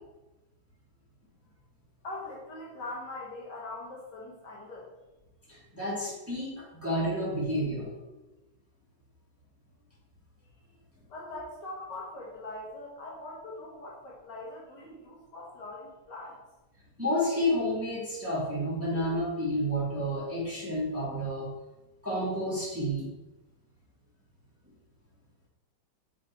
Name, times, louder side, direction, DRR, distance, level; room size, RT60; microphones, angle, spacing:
voice 1, 2.0-4.9 11.1-16.4, left 2 dB, 60° left, -4 dB, 1.6 m, -42 dB
voice 2, 5.5-7.8 17.0-21.5 22.0-23.1, equal, 5° right, -8 dB, 2.0 m, -30 dB
6.3 x 3.8 x 4.4 m, 1.0 s
omnidirectional pair, 2.2 m